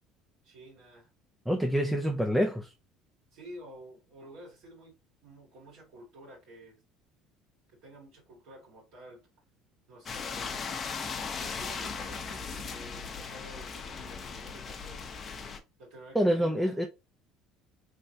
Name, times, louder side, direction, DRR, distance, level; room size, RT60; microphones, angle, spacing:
voice 1, 0.4-1.1 3.3-5.0 5.2-6.8 7.8-9.2 9.9-10.5 11.4-15.0 15.8-16.8, right 1 dB, 75° right, 2.0 m, -50 dB
voice 2, 1.5-2.7 16.1-16.9, equal, 5° right, 0.5 m, -26 dB
sound 1, 10.1-15.6, left 5 dB, 40° left, 0.7 m, -38 dB
3.4 x 3.1 x 2.7 m
supercardioid pair, 85°, 0 cm